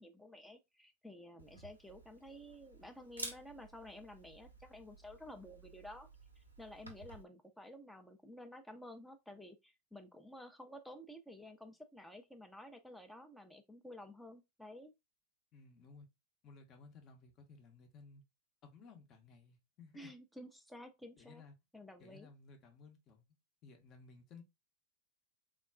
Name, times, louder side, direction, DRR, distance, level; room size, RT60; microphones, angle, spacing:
voice 1, 0.0-6.1 6.4-14.9 19.9-21.4 21.7-22.3, left 1 dB, 5° left, 0.5 m, -52 dB
Camera, 1.4-7.2, right 2 dB, 80° right, 0.6 m, -52 dB
voice 2, 15.5-16.1 16.4-18.2 18.6-20.1 21.2-21.5 22.0-23.2 23.6-24.4, left 4 dB, 35° left, 0.7 m, -58 dB
3.5 x 2.2 x 2.3 m
figure-of-eight pair, 90°, 0 cm